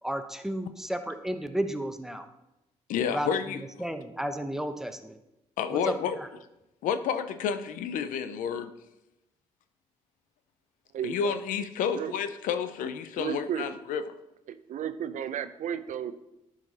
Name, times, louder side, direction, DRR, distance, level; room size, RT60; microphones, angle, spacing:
voice 1, 0.0-2.2 3.1-5.1 5.7-5.9, equal, 5° right, 7 dB, 0.9 m, -33 dB
voice 2, 2.9-3.6 5.6-6.2 6.8-8.7 11.0-14.1, left 7 dB, 80° left, 11 dB, 0.5 m, -30 dB
voice 3, 10.9-11.4 11.9-12.1 13.2-13.7 14.5-16.1, right 9 dB, 70° right, 12 dB, 0.6 m, -33 dB
10.5 x 4.9 x 4.1 m, 0.92 s
supercardioid pair, 55°, 13 cm